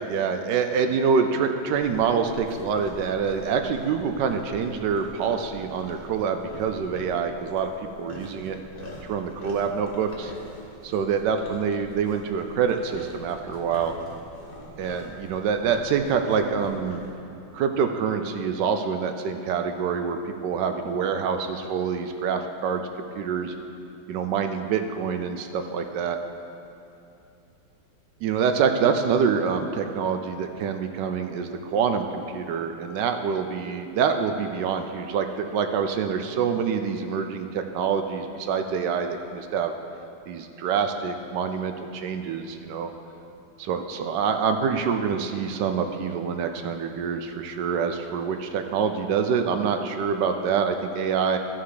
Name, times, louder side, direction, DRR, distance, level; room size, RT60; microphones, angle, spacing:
voice 1, 0.0-7.7 8.0-8.6 9.0-10.3 10.8-13.9 14.8-17.1 17.5-22.9 23.2-23.5 24.1-26.2 28.2-39.7 40.3-42.9 43.6-51.4, right 6 dB, 75° right, 7 dB, 1.1 m, -26 dB
sound 1, 1.7-17.1, left 1 dB, 35° left, 1.1 m, -44 dB
13.0 x 5.8 x 4.9 m, 2.6 s
omnidirectional pair, 2.2 m